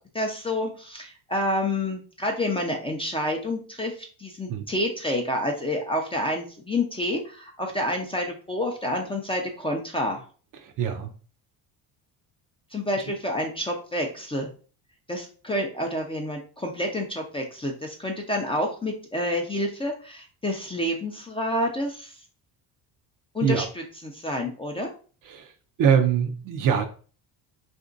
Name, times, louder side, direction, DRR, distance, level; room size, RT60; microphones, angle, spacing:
voice 1, 0.1-10.2 12.7-14.5 15.1-22.2 23.3-24.9, left 1 dB, 10° left, 1 dB, 0.5 m, -28 dB
voice 2, 10.6-11.1 23.4-23.7 25.3-25.5 25.8-26.9, right 7 dB, 40° right, 6 dB, 0.5 m, -23 dB
2.8 x 2.6 x 2.4 m, 0.39 s
supercardioid pair, 70°, 49 cm